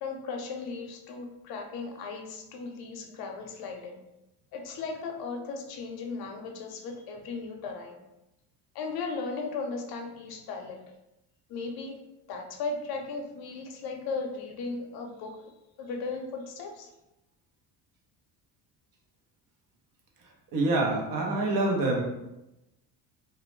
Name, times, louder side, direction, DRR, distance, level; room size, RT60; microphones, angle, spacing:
voice 1, 0.0-4.0 4.5-8.0 8.7-10.8 11.5-12.0 12.3-15.5 15.8-16.9, left 4 dB, 70° left, 3 dB, 0.6 m, -36 dB
voice 2, 20.5-22.0, right 2 dB, 55° right, 0 dB, 0.7 m, -26 dB
2.3 x 2.1 x 3.0 m, 0.92 s
cardioid pair, 100°, 39 cm